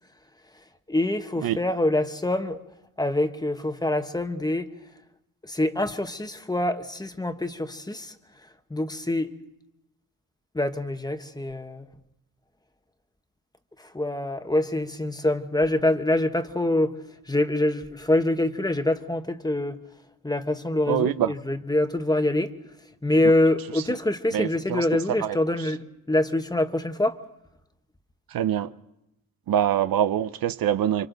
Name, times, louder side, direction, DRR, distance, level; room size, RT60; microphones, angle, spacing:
voice 1, 0.9-2.6 3.0-4.7 5.5-8.1 8.7-9.3 10.5-11.8 13.9-16.9 17.3-19.8 20.2-22.5 23.0-27.1, left 1 dB, 10° left, 1.1 m, -25 dB
voice 2, 20.9-21.3 23.7-23.8 24.3-24.9 25.2-25.7 28.3-28.7 29.5-31.1, right 10 dB, 85° right, 0.7 m, -25 dB
29.5 x 25.0 x 3.9 m
wide cardioid pair, 120°, 34 cm